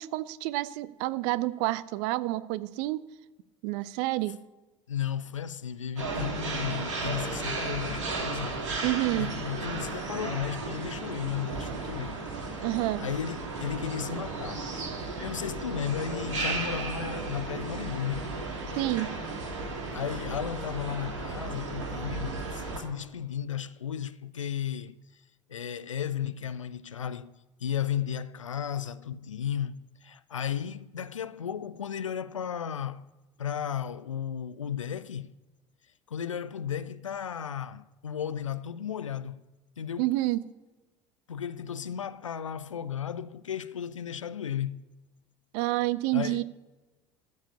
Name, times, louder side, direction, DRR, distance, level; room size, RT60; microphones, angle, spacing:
voice 1, 0.0-3.0 3.6-4.4 8.8-9.3 12.6-13.0 18.8-19.1 40.0-40.4 45.5-46.4, right 18 dB, 55° right, 0.5 m, -28 dB
voice 2, 4.9-8.6 9.1-12.2 13.0-14.7 15.2-18.3 19.9-25.0 25.5-27.3 27.6-33.1 33.4-35.3 36.1-39.4 39.8-40.1 41.3-44.8 46.1-46.4, left 9 dB, 80° left, 0.4 m, -34 dB
sound 1, 6.0-22.8, right 3 dB, 70° right, 2.6 m, -35 dB
14.0 x 4.8 x 8.4 m
figure-of-eight pair, 65°, 16 cm